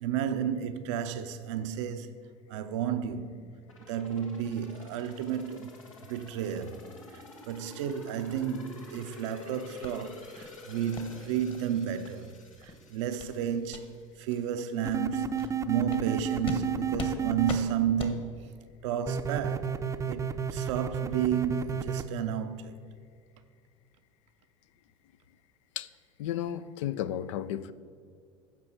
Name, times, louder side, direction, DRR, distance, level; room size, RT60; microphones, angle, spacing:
voice 1, 0.0-2.1 2.5-3.4 3.9-5.7 6.1-6.8 7.1-13.9 14.2-18.5 18.8-19.8 20.1-22.7, right 8 dB, 65° right, 0.6 m, -32 dB
sound 1, 3.7-14.4 14.8-14.9, left 3 dB, 85° left, 1.3 m, -50 dB
sound 2, 9.8-9.9 10.4-10.5 10.9-11.1 11.5-11.6 12.0-12.1 12.5-12.7 13.2-13.3 13.7-13.8 14.3-14.4 14.8-15.0 15.4-15.5 15.9-16.0 16.4-16.6 17.0-17.1 17.5-17.6 18.0-18.1, left 4 dB, 30° left, 1.3 m, -40 dB
sound 3, 14.8-17.5 19.1-22.0, right 7 dB, 20° right, 0.6 m, -31 dB
voice 2, 26.2-27.7, left 11 dB, 70° left, 0.4 m, -33 dB
14.5 x 5.3 x 4.5 m
hypercardioid pair, 75°, 16 cm